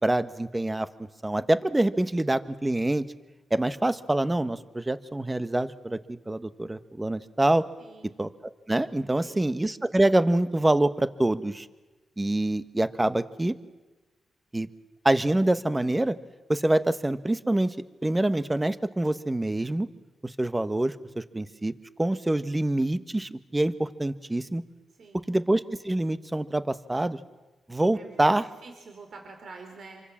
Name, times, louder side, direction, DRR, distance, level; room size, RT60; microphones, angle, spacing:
voice 1, 0.0-3.1 3.5-7.7 8.2-8.3 8.7-11.7 12.2-13.5 14.5-14.7 15.0-16.2 16.5-17.7 18.0-19.9 20.2-21.7 22.0-24.6 25.3-27.2 27.7-28.5, right 1 dB, 15° right, 12 dB, 1.2 m, -25 dB
voice 2, 7.8-8.2 9.2-9.5 25.0-25.3 27.9-28.4 28.6-30.0, right 4 dB, 65° right, 3 dB, 4.3 m, -47 dB
27.0 x 24.5 x 7.4 m, 1.2 s
cardioid pair, 80°, 0 cm